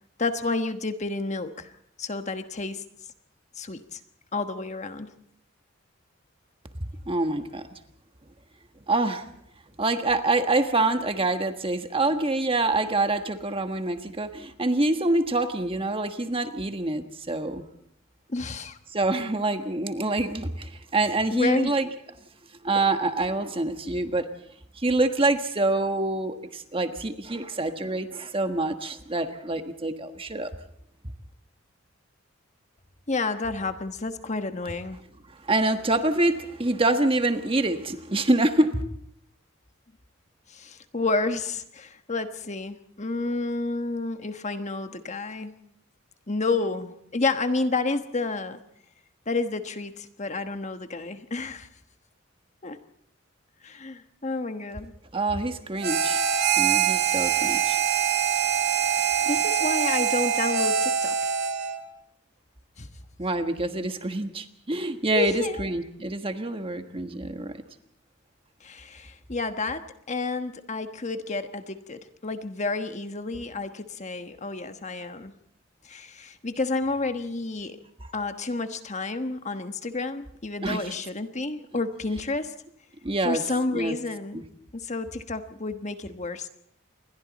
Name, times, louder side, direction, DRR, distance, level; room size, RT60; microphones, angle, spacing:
voice 1, 0.2-1.7 2.0-2.8 3.6-4.0 4.3-5.1 18.3-18.8 21.3-21.7 33.1-35.0 40.5-45.5 46.3-48.6 49.3-51.7 52.6-52.8 53.6-54.9 58.9-61.3 62.8-62.9 65.1-65.7 68.6-75.3 75.8-77.8 78.1-82.5 83.2-84.4 84.7-86.5, left 3 dB, 35° left, 8 dB, 1.2 m, -30 dB
voice 2, 7.1-7.8 8.9-9.3 9.8-17.6 18.9-21.9 22.6-24.3 24.8-30.5 35.4-38.8 55.1-56.2 56.6-57.8 63.2-67.6 80.6-80.9 83.0-83.4 83.7-83.9 84.3-84.4, right 2 dB, 25° right, 7 dB, 1.4 m, -26 dB
Harmonica, 55.8-61.8, right 8 dB, 50° right, 2.5 m, -24 dB
28.5 x 22.0 x 4.2 m, 0.72 s
head